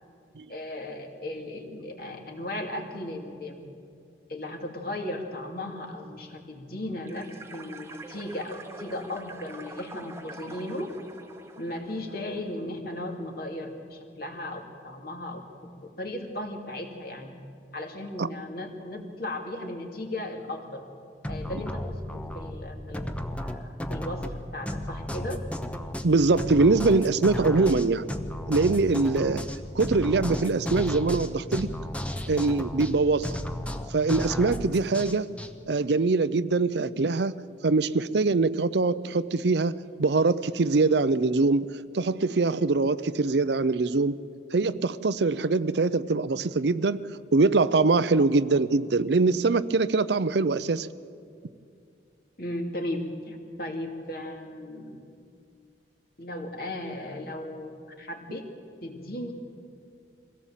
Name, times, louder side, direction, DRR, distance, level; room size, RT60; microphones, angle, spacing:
voice 1, 0.5-3.6 4.3-10.9 11.6-15.4 16.0-17.4 17.7-20.8 21.3-25.4 52.4-55.0 56.2-57.7 58.0-58.4 58.8-59.3, left 1 dB, 55° left, 3 dB, 2.5 m, -36 dB
sound 1, 7.0-12.8, right 2 dB, 15° right, 1.1 m, -45 dB
sound 2, 21.2-35.5, left 1 dB, 5° left, 0.9 m, -34 dB
voice 2, 26.0-28.1 28.5-29.4 29.7-31.7 32.3-33.4 33.9-35.3 35.7-37.3 37.6-39.7 40.0-41.7 41.9-44.2 44.5-47.0 47.3-50.9, right 3 dB, 70° right, 15 dB, 0.6 m, -23 dB
23.0 x 17.0 x 7.4 m, 2.4 s
head